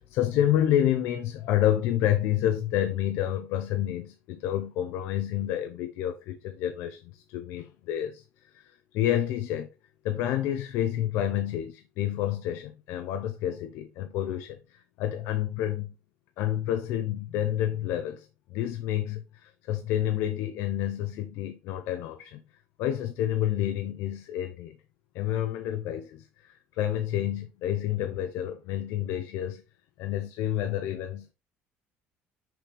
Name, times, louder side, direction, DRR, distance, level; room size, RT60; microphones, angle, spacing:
voice 1, 0.0-9.7 10.0-15.9 16.4-22.4 22.8-24.8 25.1-29.6 30.0-31.3, left 11 dB, 70° left, 0.6 m, -29 dB
6.0 x 5.1 x 3.4 m
cardioid pair, 170°, 5 cm